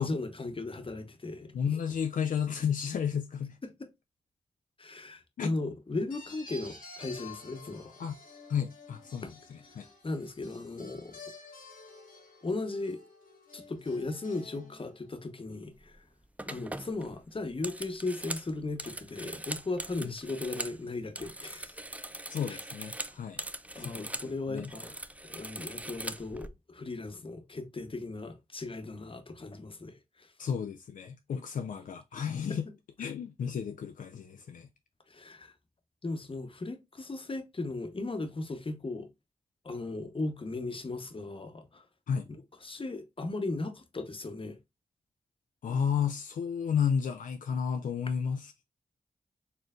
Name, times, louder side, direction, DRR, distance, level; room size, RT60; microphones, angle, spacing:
voice 1, 0.0-1.5 3.6-3.9 4.8-8.0 9.2-9.3 10.0-11.2 12.4-13.0 13.5-16.0 16.5-21.8 23.7-25.0 25.3-30.5 32.5-32.6 35.1-35.5 36.0-39.1 39.6-41.9 42.3-44.6, left 2 dB, 40° left, 0.9 m, -37 dB
voice 2, 1.5-3.6 5.4-5.5 8.0-8.2 8.5-9.9 20.0-20.1 22.3-23.4 23.8-24.1 24.5-24.7 30.4-32.7 33.0-34.7 42.1-42.3 45.6-48.6, left 7 dB, 70° left, 0.4 m, -32 dB
sound 1, 6.1-15.2, left 3 dB, 90° left, 1.2 m, -51 dB
sound 2, 15.8-16.0 16.4-20.8 21.1-24.3 24.6-26.5, right 1 dB, 10° right, 0.4 m, -41 dB
4.3 x 3.1 x 2.4 m
cardioid pair, 40°, 14 cm